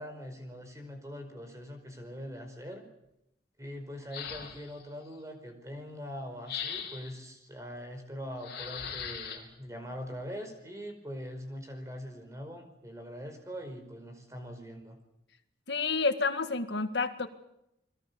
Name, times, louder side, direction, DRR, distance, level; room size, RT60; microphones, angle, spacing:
voice 1, 0.0-2.8 3.6-15.0, equal, 15° right, 6 dB, 4.9 m, -42 dB
sound 1, 4.1-4.8 6.5-7.2 8.4-9.4, left 7 dB, 55° left, 4.2 m, -39 dB
voice 2, 15.7-17.3, left 4 dB, 75° left, 8 dB, 1.9 m, -29 dB
29.5 x 22.0 x 7.1 m, 0.85 s
head